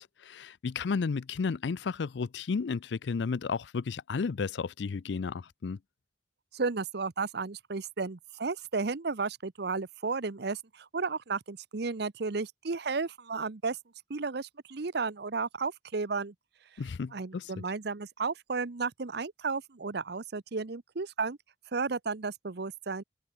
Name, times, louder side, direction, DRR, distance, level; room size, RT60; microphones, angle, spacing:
voice 1, 0.0-5.8 16.8-17.5, left 5 dB, 70° left, 0.5 m, -33 dB
voice 2, 6.5-13.8 14.1-16.3 17.1-21.4 21.7-23.0, right 4 dB, 65° right, 0.8 m, -33 dB
head